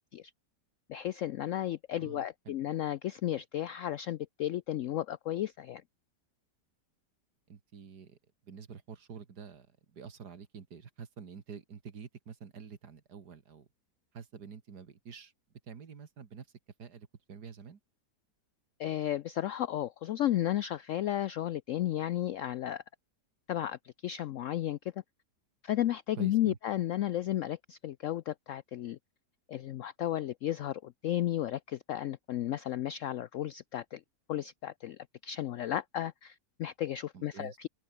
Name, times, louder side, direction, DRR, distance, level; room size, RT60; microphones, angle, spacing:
voice 1, 0.9-5.8 18.8-22.8 23.5-24.9 25.6-29.0 29.5-34.0 34.3-37.7, left 12 dB, 75° left, 0.7 m, -33 dB
voice 2, 2.0-2.6 7.5-13.7 14.1-15.3 15.6-16.5 16.8-17.8 26.2-26.6 37.1-37.6, right 6 dB, 70° right, 2.4 m, -48 dB
open air
omnidirectional pair, 1.8 m